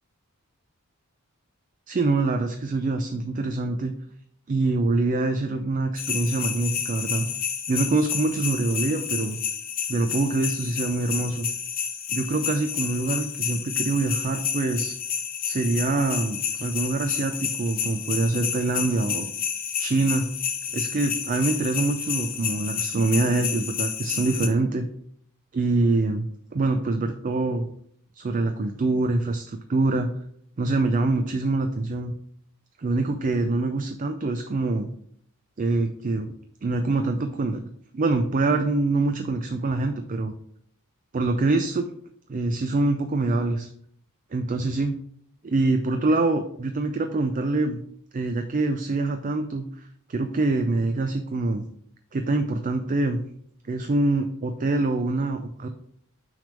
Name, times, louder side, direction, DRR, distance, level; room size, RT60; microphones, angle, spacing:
voice 1, 1.9-3.9 4.5-7.3 7.7-9.4 9.9-11.5 12.1-14.9 15.4-19.3 19.8-20.3 20.7-24.9 25.5-27.7 28.1-30.1 30.6-32.1 32.8-34.9 35.6-36.3 36.6-37.6 37.9-40.3 41.1-41.9 42.3-43.7 44.3-44.9 45.4-47.8 48.1-51.6 52.1-53.2 53.7-55.7, right 2 dB, 35° right, 7 dB, 0.4 m, -25 dB
sound 1, 6.0-24.5, left 8 dB, 40° left, 0.8 m, -30 dB
6.2 x 3.4 x 5.2 m, 0.66 s
head